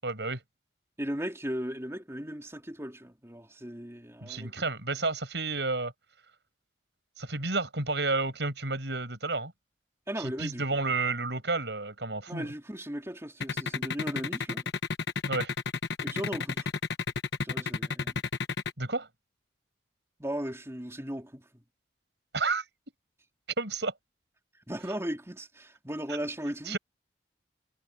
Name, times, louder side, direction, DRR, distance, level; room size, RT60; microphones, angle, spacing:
voice 1, 0.0-0.4 4.2-5.9 7.2-9.5 10.2-12.5 15.3-15.5 18.8-19.1 22.3-22.6 23.6-23.9 26.7-26.8, right 3 dB, 70° right, 6.8 m, -31 dB
voice 2, 1.0-4.5 10.1-10.6 12.3-14.6 16.0-16.7 17.4-18.1 20.2-21.6 24.7-26.8, equal, 15° right, 3.5 m, -37 dB
sound 1, 13.4-18.7, left 4 dB, 65° left, 1.1 m, -31 dB
head